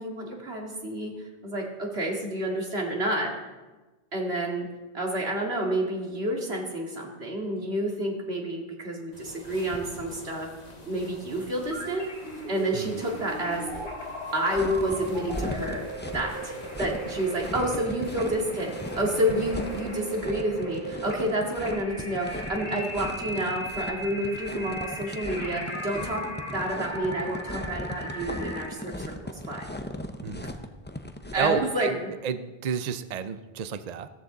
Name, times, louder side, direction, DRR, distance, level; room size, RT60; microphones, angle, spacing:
voice 1, 0.0-3.3 4.1-4.7 4.9-10.5 10.8-12.1 12.5-13.6 14.3-26.3 26.5-29.7 31.3-32.1, right 1 dB, 85° right, 0 dB, 2.5 m, -29 dB
sound 1, 9.1-20.3, left 1 dB, 40° left, 1.5 m, -45 dB
sound 2, 11.7-28.7, right 1 dB, 90° left, 3.3 m, -38 dB
sound 3, 14.5-31.6, left 1 dB, 10° left, 0.6 m, -38 dB
voice 2, 30.2-30.5 31.4-34.1, right 7 dB, 50° right, 12 dB, 0.6 m, -31 dB
15.5 x 14.0 x 3.9 m, 1.2 s
omnidirectional pair, 1.0 m